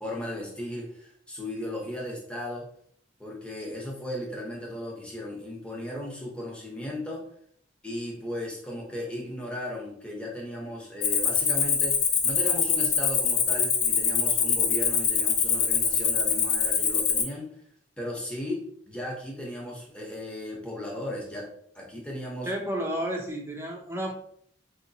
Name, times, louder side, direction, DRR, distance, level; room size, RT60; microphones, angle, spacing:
voice 1, 0.0-2.7 3.2-7.2 7.8-17.6 18.0-21.5 21.7-22.5, left 1 dB, 5° left, -2 dB, 0.9 m, -36 dB
Cricket, 11.0-17.2, left 6 dB, 60° left, 0.6 m, -24 dB
voice 2, 22.4-24.1, right 1 dB, 15° right, 1 dB, 0.6 m, -31 dB
4.7 x 2.9 x 2.7 m, 0.63 s
head